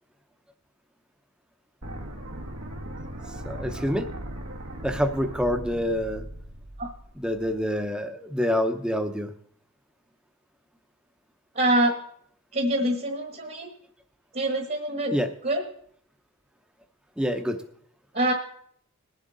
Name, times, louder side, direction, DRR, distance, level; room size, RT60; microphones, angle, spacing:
sound 1, 1.8-7.8, right 1 dB, 80° right, 1.7 m, -38 dB
voice 1, 3.4-4.1 4.8-6.2 7.2-9.3 15.1-15.3 17.2-17.6, equal, 5° right, 7 dB, 0.8 m, -26 dB
voice 2, 11.5-12.0 12.5-13.7 14.3-15.1 15.4-15.6 18.1-18.3, right 1 dB, 40° right, 3 dB, 1.3 m, -25 dB
21.0 x 7.4 x 4.0 m, 0.65 s
head